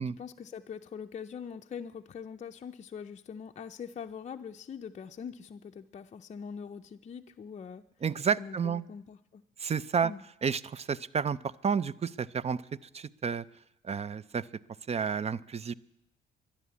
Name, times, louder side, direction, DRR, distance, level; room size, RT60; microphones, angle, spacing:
voice 1, 0.0-7.9 8.4-9.4 10.0-10.2, left 7 dB, 35° left, 4 dB, 0.5 m, -43 dB
voice 2, 8.0-8.8 9.6-10.1 10.4-11.4 11.6-12.6 12.9-13.4 13.8-14.5 14.9-15.7, right 6 dB, 30° right, 21 dB, 0.5 m, -30 dB
12.5 x 10.0 x 8.3 m, 0.85 s
cardioid pair, 90°, 20 cm